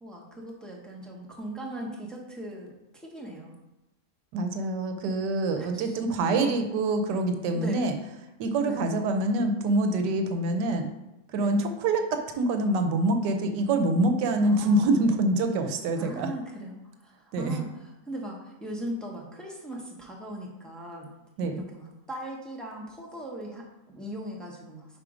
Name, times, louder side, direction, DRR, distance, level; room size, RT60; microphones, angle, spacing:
voice 1, 0.0-3.6 5.6-6.0 7.5-7.9 8.6-8.8 11.3-11.6 14.4-14.9 15.9-16.7 17.0-21.1 21.5-25.0, right 1 dB, ahead, -2 dB, 0.4 m, -39 dB
voice 2, 4.3-7.9 8.4-10.9 11.3-16.3 17.3-17.6 21.4-21.6, right 2 dB, 90° right, 6 dB, 1.3 m, -25 dB
4.9 x 4.5 x 4.9 m, 0.95 s
omnidirectional pair, 1.8 m